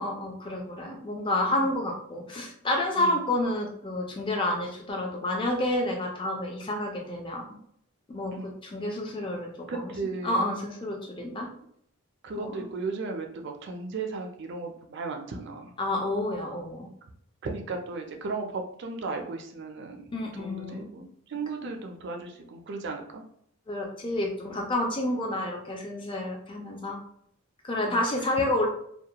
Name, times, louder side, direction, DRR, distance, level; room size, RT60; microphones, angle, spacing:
voice 1, 0.0-7.4 8.1-9.9 10.2-11.5 12.4-12.6 15.8-16.9 20.1-20.9 21.6-21.7 23.7-27.0 27.6-28.7, left 1 dB, 20° left, 1 dB, 0.4 m, -29 dB
voice 2, 9.7-10.4 12.2-15.7 17.4-20.1 20.4-23.2 27.9-28.0, right 3 dB, 50° right, 3 dB, 0.4 m, -35 dB
2.3 x 2.1 x 2.8 m, 0.69 s
head